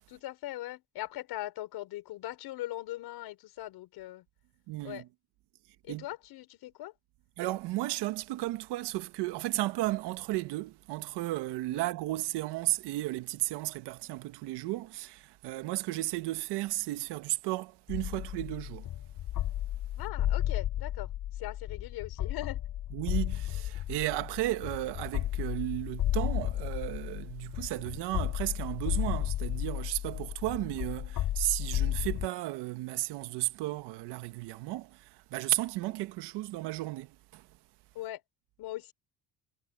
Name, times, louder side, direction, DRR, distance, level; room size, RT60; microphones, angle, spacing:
voice 1, 0.1-4.3 4.8-5.1 5.8-6.9 11.7-11.8 20.0-22.6 37.9-38.2 38.6-38.9, left 15 dB, 70° left, 5.3 m, -40 dB
voice 2, 4.7-5.0 5.9-6.0 7.4-18.9 22.9-37.4, right 17 dB, 85° right, 1.6 m, -34 dB
sound 1, 17.9-32.3, left 12 dB, 55° left, 5.1 m, -33 dB
cardioid pair, 165°, 40 cm